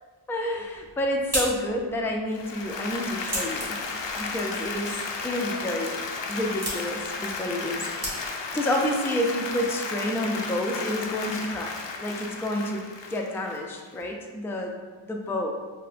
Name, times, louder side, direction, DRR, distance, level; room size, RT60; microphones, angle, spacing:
voice 1, 0.3-3.8 4.2-6.0 6.3-14.8 15.0-15.5, left 1 dB, 5° left, 1 dB, 0.3 m, -29 dB
sound 1, 0.6-8.6, equal, 30° right, 1.4 m, -37 dB
Applause, 2.3-14.0, left 4 dB, 65° left, 0.5 m, -34 dB
5.4 x 2.1 x 2.5 m, 1.4 s
wide cardioid pair, 55°, 48 cm